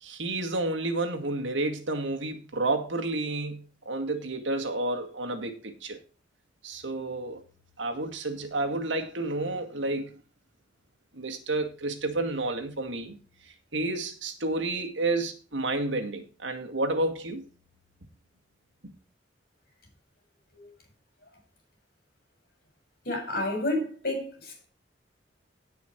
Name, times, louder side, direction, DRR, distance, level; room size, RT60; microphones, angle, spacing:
voice 1, 0.0-6.0 6.6-7.4 7.8-10.1 11.1-13.2 13.7-17.4, right 2 dB, 90° right, 2.2 m, -30 dB
voice 2, 23.0-24.6, left 1 dB, 55° left, 6.2 m, -30 dB
16.5 x 5.7 x 4.5 m
head